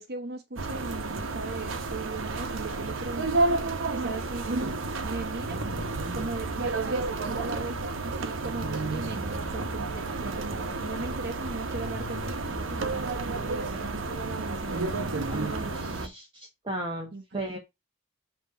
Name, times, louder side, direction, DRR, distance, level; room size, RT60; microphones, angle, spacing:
voice 1, 0.0-3.6 3.9-4.7 5.0-5.6 6.1-15.1 15.6-16.1 17.1-17.4, right 3 dB, 55° right, 1.0 m, -39 dB
sound 1, 0.6-16.1, right 3 dB, 80° right, 0.9 m, -31 dB
sound 2, 5.4-8.2 8.6-16.1, left 2 dB, 50° left, 1.3 m, -43 dB
voice 2, 15.3-17.6, right 1 dB, 25° right, 1.2 m, -36 dB
8.1 x 3.0 x 5.0 m
head